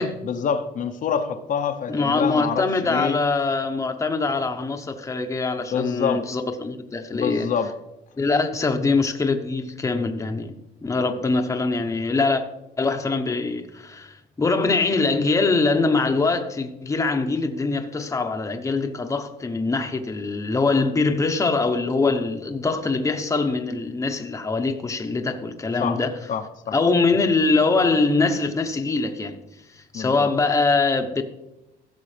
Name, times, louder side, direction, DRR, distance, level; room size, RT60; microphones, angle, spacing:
voice 1, 0.0-3.2 5.7-6.3 7.1-7.7 25.8-26.0 26.3-26.8 29.9-30.3, left 7 dB, 50° left, 0.9 m, -26 dB
voice 2, 1.9-7.5 8.2-10.5 10.8-12.4 12.8-26.2 26.7-29.4 29.8-31.2, left 3 dB, 20° left, 1.0 m, -23 dB
16.0 x 6.8 x 3.3 m
cardioid pair, 110°, 17 cm